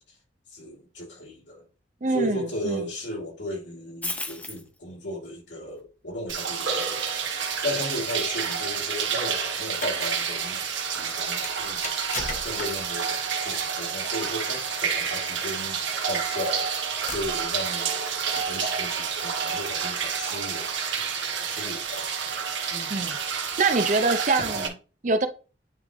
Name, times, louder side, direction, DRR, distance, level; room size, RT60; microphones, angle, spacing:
voice 1, 0.5-1.6 2.1-10.6 11.0-11.8 12.1-17.9 18.5-20.7 21.5-22.3 22.7-23.1, left 1 dB, 70° left, 2.8 m, -36 dB
voice 2, 2.0-2.9 22.9-23.1 23.6-25.3, right 3 dB, 40° right, 0.6 m, -25 dB
sound 1, 4.0-4.8 6.1-6.2 9.5-9.6, left 2 dB, 10° left, 0.5 m, -33 dB
sound 2, 6.3-24.7, right 6 dB, 75° right, 1.3 m, -29 dB
sound 3, 9.6-10.0 11.4-13.0 14.3-14.5 15.8-15.9 16.5-16.6 17.1-17.6 18.4-18.7, left 3 dB, 40° left, 1.0 m, -37 dB
9.2 x 3.2 x 3.6 m
head